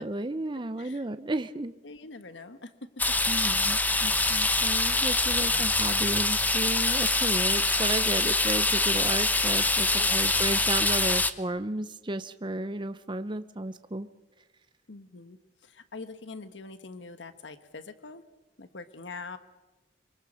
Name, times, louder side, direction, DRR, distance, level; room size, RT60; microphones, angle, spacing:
voice 1, 0.0-1.7 3.3-14.1, right 2 dB, 25° right, 10 dB, 0.7 m, -33 dB
voice 2, 1.8-2.9 9.9-10.4 14.9-15.4 15.6-18.2 18.6-19.4, left 3 dB, 85° left, 10 dB, 1.2 m, -44 dB
sound 1, 3.0-11.3, left 2 dB, 10° left, 0.8 m, -25 dB
25.0 x 23.5 x 6.4 m, 1.1 s
head